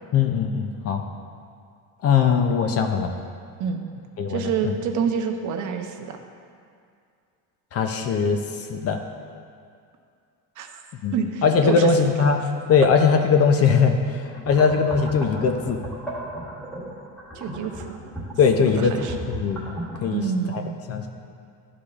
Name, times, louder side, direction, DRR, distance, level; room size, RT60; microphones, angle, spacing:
voice 1, 0.1-1.0 2.0-3.1 4.2-4.7 7.7-9.0 11.0-11.1 11.4-12.4 12.7-15.8 18.4-20.2 20.5-20.6 20.9-21.1, left 5 dB, 40° left, 5 dB, 0.4 m, -20 dB
voice 2, 4.3-6.2 10.6-10.7 11.1-11.9 17.3-17.9 18.6-19.1 20.1-20.8, right 6 dB, 50° right, 5 dB, 0.6 m, -27 dB
sound 1, 14.3-20.1, right 1 dB, 5° left, 1.1 m, -36 dB
11.5 x 4.8 x 2.4 m, 2.3 s
cardioid pair, 135°, 40 cm